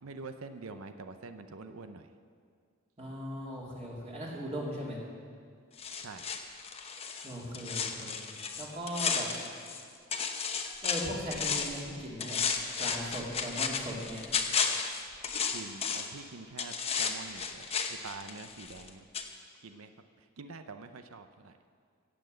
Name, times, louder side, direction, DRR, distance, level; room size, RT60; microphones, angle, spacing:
voice 1, 0.0-2.1 6.0-6.3 15.5-19.1 19.6-21.6, right 3 dB, 80° right, 9 dB, 0.7 m, -46 dB
voice 2, 3.0-5.0 7.2-8.2 8.6-9.3 10.8-12.4 12.8-14.2, equal, 30° right, -4 dB, 2.7 m, -38 dB
sound 1, 5.8-9.8 10.1-11.8 12.2-16.2 16.6-18.9 19.1-19.3, left 6 dB, 30° left, 0.9 m, -33 dB
16.0 x 7.9 x 7.7 m, 2.1 s
head